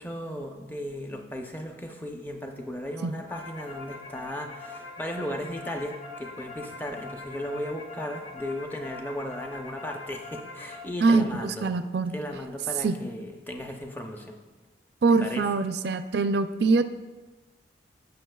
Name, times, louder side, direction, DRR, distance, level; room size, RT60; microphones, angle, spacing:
voice 1, 0.0-11.7 12.1-14.4 15.1-15.5, equal, 10° left, 2 dB, 0.6 m, -36 dB
sound 1, 2.9-10.8, left 3 dB, 90° left, 2.1 m, -42 dB
voice 2, 11.0-12.1 12.8-12.9 15.0-16.8, right 4 dB, 60° right, 10 dB, 0.4 m, -23 dB
14.5 x 6.1 x 2.3 m, 1.3 s
head